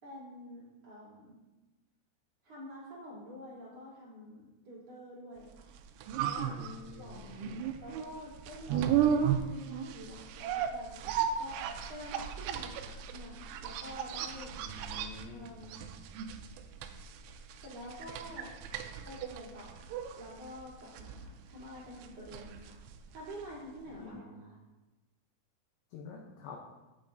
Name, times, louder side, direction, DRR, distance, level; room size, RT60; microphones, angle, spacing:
voice 1, 0.0-1.4 2.4-5.7 6.2-14.5 15.3-15.9 17.6-18.5 19.0-22.7 23.1-24.6, equal, 35° right, -8 dB, 3.8 m, -48 dB
sound 1, 5.6-23.6 23.9-24.0, right 8 dB, 85° right, 2.8 m, -35 dB
voice 2, 6.5-7.7 14.5-15.5 23.9-24.4 25.9-26.6, left 5 dB, 85° left, 1 dB, 2.3 m, -48 dB
11.5 x 7.7 x 2.6 m, 1.1 s
omnidirectional pair, 5.8 m